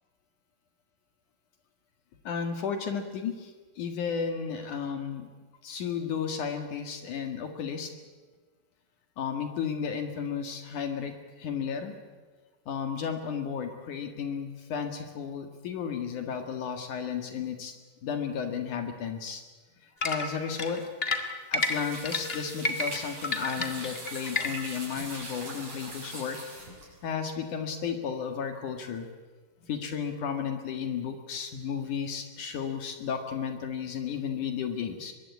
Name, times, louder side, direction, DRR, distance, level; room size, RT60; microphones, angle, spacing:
voice 1, 2.2-5.3 5.6-7.9 9.2-11.9 12.7-17.7 18.0-19.4 19.8-20.8 21.5-26.4 27.0-29.1 29.6-35.1, left 7 dB, 65° left, 6 dB, 3.1 m, -33 dB
sound 1, 20.0-24.8, left 2 dB, 25° left, 1.2 m, -30 dB
sound 2, 21.6-27.1, right 2 dB, 50° right, 8.1 m, -42 dB
24.5 x 21.5 x 8.5 m, 1.4 s
omnidirectional pair, 4.0 m